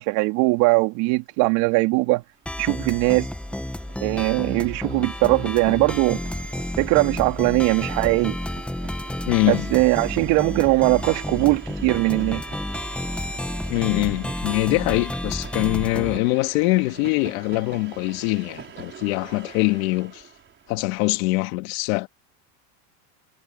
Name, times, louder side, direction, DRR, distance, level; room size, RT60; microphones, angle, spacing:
voice 1, 0.0-2.2 2.6-3.3 4.0-6.2 6.8-8.4 9.4-12.4, right 25 dB, 60° right, 3.6 m, -20 dB
sound 1, 2.5-16.2, left 1 dB, 5° left, 1.6 m, -31 dB
Train, 2.5-2.6 2.8-21.2, right 8 dB, 25° right, 4.7 m, -44 dB
voice 2, 9.3-9.7 13.7-20.2 20.7-22.1, left 23 dB, 70° left, 2.2 m, -23 dB
supercardioid pair, 135°, 43 cm